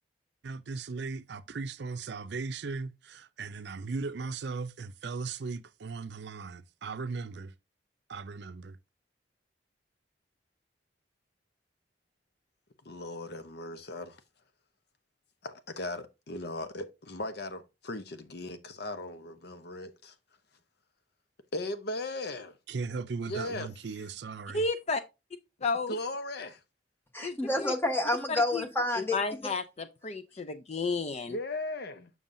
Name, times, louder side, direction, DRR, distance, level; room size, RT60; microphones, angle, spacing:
voice 1, 0.4-7.5 8.1-8.8 22.7-24.6, right 4 dB, 65° right, 0.5 m, -37 dB
voice 2, 12.8-14.2 15.4-20.1 21.5-22.6 23.3-23.7 25.9-26.6 31.3-32.1, left 2 dB, 60° left, 0.8 m, -37 dB
voice 3, 24.5-25.0 25.6-26.0 27.2-27.7 28.3-28.6 29.1-31.4, left 3 dB, 35° left, 0.5 m, -32 dB
voice 4, 27.1-29.2, left 1 dB, 10° left, 1.1 m, -29 dB
7.2 x 6.2 x 2.6 m
head